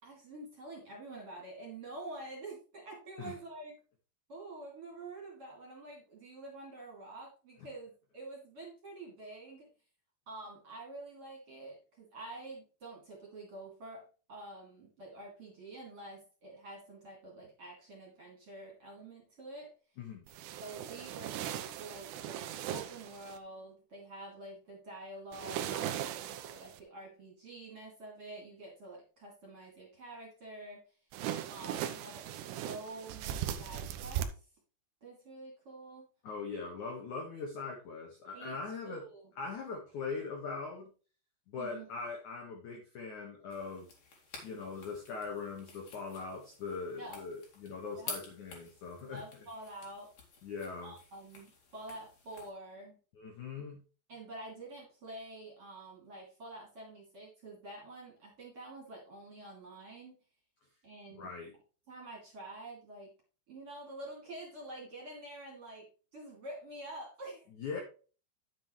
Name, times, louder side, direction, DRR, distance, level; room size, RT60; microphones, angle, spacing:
voice 1, 0.0-3.7 4.3-9.7 10.3-19.7 20.6-30.8 31.5-34.3 35.0-36.1 38.3-38.6 38.8-39.2 41.6-41.8 47.0-47.2 48.0-48.1 49.0-50.1 50.8-53.0 54.1-60.2 60.8-61.3 61.9-63.1 63.5-65.9 66.1-67.5, right 2 dB, 35° right, -2 dB, 2.7 m, -48 dB
voice 2, 20.0-20.3 36.2-39.0 39.4-40.9 41.5-43.9 44.4-49.2 50.4-51.0 53.1-53.8 61.1-61.5 67.5-67.8, left 4 dB, 75° left, 1 dB, 1.8 m, -41 dB
sound 1, 20.3-23.4 25.3-26.8 31.1-34.2, right 11 dB, 85° right, 2.5 m, -39 dB
sound 2, 43.5-52.5, left 4 dB, 45° left, 2.5 m, -51 dB
9.9 x 7.8 x 3.2 m, 0.36 s
omnidirectional pair, 5.9 m